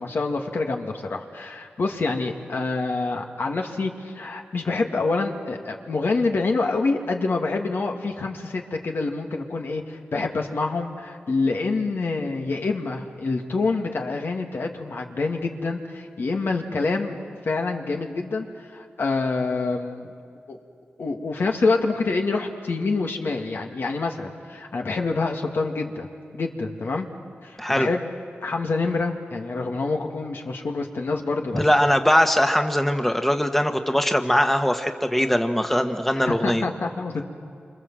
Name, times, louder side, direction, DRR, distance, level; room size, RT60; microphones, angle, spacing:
voice 1, 0.0-17.2 17.4-20.1 20.5-20.6 21.0-26.1 26.3-27.1 27.4-28.0 28.4-31.7 36.2-37.2, left 3 dB, 70° left, 2 dB, 2.3 m, -26 dB
voice 2, 31.5-36.6, equal, 5° left, 6 dB, 1.4 m, -21 dB
27.5 x 26.5 x 7.7 m, 2.3 s
wide cardioid pair, 80°, 4 cm